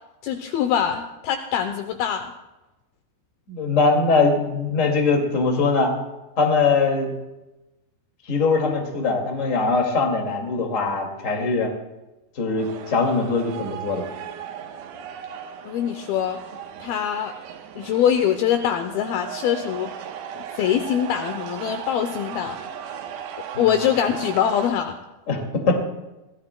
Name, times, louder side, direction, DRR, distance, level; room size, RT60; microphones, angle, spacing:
voice 1, 0.2-2.3 15.7-16.4 16.8-17.3 17.8-19.9 20.4-22.6 23.6-25.0, left 9 dB, 80° left, 7 dB, 2.3 m, -23 dB
voice 2, 3.5-5.9 6.4-7.1 8.2-11.7 12.3-14.0 23.5-23.7 25.3-25.4 25.7-25.8, left 4 dB, 30° left, 2 dB, 1.5 m, -21 dB
sound 1, 12.6-24.7, right 9 dB, 80° right, 3.2 m, -37 dB
23.5 x 16.5 x 2.2 m, 1.0 s
omnidirectional pair, 5.0 m